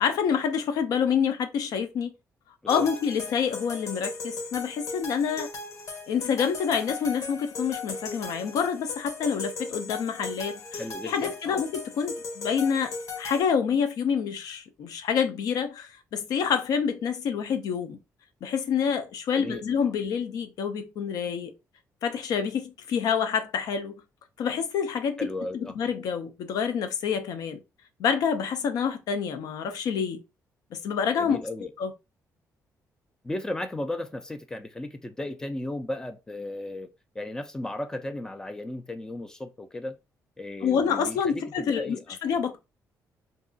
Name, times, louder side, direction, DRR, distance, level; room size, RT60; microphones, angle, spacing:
voice 1, 0.0-2.1 2.7-5.5 6.1-18.0 18.4-21.5 22.0-23.9 24.4-25.2 25.5-27.6 28.0-30.2 30.7-31.4 31.8-31.9 40.6-42.6, left 7 dB, 75° left, 0.6 m, -27 dB
sound 1, 2.7-13.4, left 3 dB, 60° left, 1.0 m, -37 dB
voice 2, 10.8-11.6 19.3-19.6 25.2-25.8 31.2-31.7 33.2-40.0 40.4-42.2, left 1 dB, 10° left, 0.3 m, -35 dB
2.7 x 2.4 x 3.8 m
cardioid pair, 175°, 6 cm